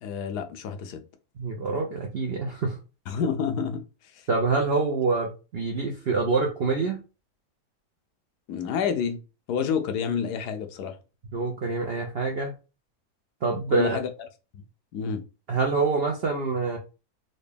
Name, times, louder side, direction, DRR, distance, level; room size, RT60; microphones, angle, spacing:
voice 1, 0.0-1.0 3.1-3.9 4.1-4.3 8.5-9.2 9.5-11.0 13.7-14.1 14.9-15.2, left 6 dB, 85° left, 1.2 m, -29 dB
voice 2, 1.4-2.8 4.3-7.0 11.3-12.5 13.4-14.0 15.5-16.8, right 4 dB, 65° right, 0.6 m, -26 dB
3.9 x 2.1 x 3.4 m
omnidirectional pair, 1.7 m